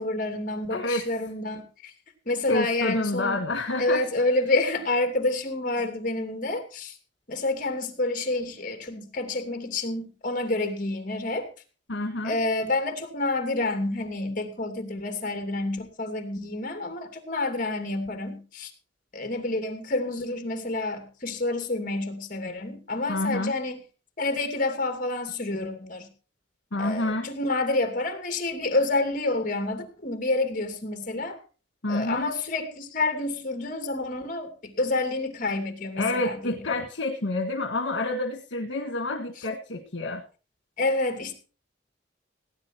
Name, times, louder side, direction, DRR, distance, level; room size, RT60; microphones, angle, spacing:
voice 1, 0.0-1.9 2.3-3.4 3.8-7.0 7.3-11.5 12.2-18.7 19.1-23.8 24.2-26.1 26.8-31.4 31.9-36.6 40.8-41.3, left 2 dB, 45° left, 6 dB, 2.7 m, -28 dB
voice 2, 0.7-1.0 2.5-4.1 11.9-12.4 23.1-23.5 26.7-27.3 31.8-32.3 36.0-40.2, left 2 dB, 80° left, 3 dB, 1.7 m, -28 dB
17.5 x 9.7 x 4.6 m, 0.36 s
head